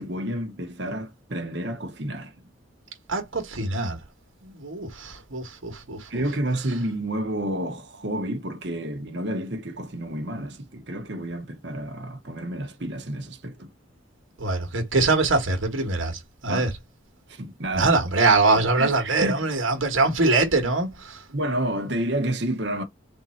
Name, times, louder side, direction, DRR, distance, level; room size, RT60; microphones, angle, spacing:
voice 1, 0.0-2.3 6.1-13.7 16.5-16.7 17.3-17.9 18.8-19.5 21.3-22.8, right 1 dB, 55° right, 1.1 m, -30 dB
voice 2, 3.1-4.0 4.4-6.1 14.4-16.7 17.7-21.2, right 3 dB, 80° right, 1.4 m, -23 dB
3.7 x 2.7 x 4.3 m
head